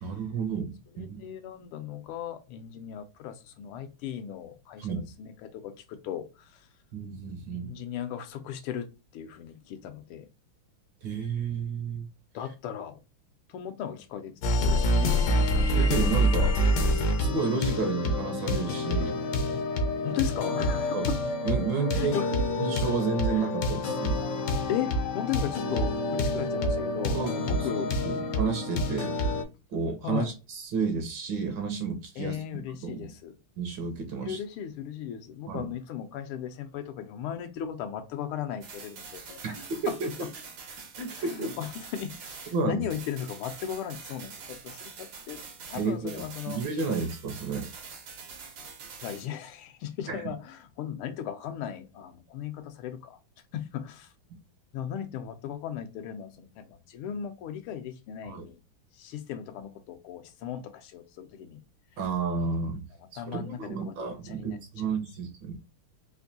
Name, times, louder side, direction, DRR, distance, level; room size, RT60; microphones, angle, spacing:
voice 1, 0.0-1.2 4.8-5.1 6.9-7.7 11.0-12.1 15.7-16.6 17.2-19.2 20.9-21.1 21.4-22.2 22.6-24.2 27.1-27.3 27.8-29.1 29.7-32.4 32.8-33.1 33.6-34.4 35.5-35.7 39.4-39.9 41.0-41.5 42.5-42.8 45.7-47.7 50.1-50.2 58.2-58.5 62.0-62.8 63.1-65.6, right 5 dB, 65° right, 1.3 m, -31 dB
voice 2, 0.9-6.6 7.5-8.9 9.1-10.3 12.3-13.0 13.5-15.2 20.0-21.2 21.9-22.3 23.3-23.5 24.7-27.9 30.0-30.3 32.2-33.4 34.2-40.1 41.2-45.4 45.7-46.6 49.0-53.2 53.5-54.1 54.7-58.6 58.9-61.6 63.2-63.9 64.2-64.9, left 9 dB, 85° left, 1.5 m, -37 dB
sound 1, 14.4-29.4, left 1 dB, 70° left, 1.0 m, -27 dB
sound 2, 38.6-42.6 42.9-49.3, right 5 dB, 85° right, 1.9 m, -45 dB
4.2 x 2.6 x 2.6 m
omnidirectional pair, 2.4 m